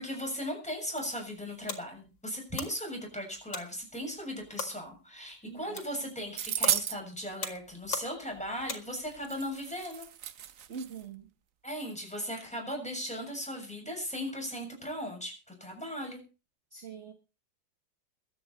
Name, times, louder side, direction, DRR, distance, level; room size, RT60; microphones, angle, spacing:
voice 1, 0.0-10.1 11.6-16.2, equal, 5° left, 1 dB, 6.9 m, -37 dB
sound 1, 0.7-9.3, left 5 dB, 75° left, 2.7 m, -43 dB
voice 2, 5.4-5.8 10.7-11.3 16.7-17.1, right 6 dB, 40° right, 6 dB, 1.6 m, -43 dB
sound 2, 6.4-7.0 9.0-9.1 9.3-11.0, right 10 dB, 55° right, 1.0 m, -33 dB
22.0 x 9.2 x 4.3 m, 0.32 s
omnidirectional pair, 2.0 m